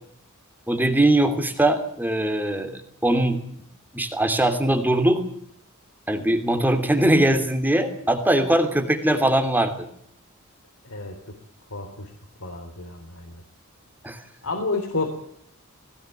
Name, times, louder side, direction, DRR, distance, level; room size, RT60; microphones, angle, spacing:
voice 1, 0.7-3.4 3.9-5.3 6.1-9.9 14.0-14.2, right 1 dB, 10° right, 7 dB, 2.9 m, -21 dB
voice 2, 10.8-11.2 11.7-12.1 12.4-13.4 14.4-15.2, left 3 dB, 75° left, 3 dB, 3.6 m, -30 dB
20.0 x 17.5 x 8.4 m, 0.67 s
head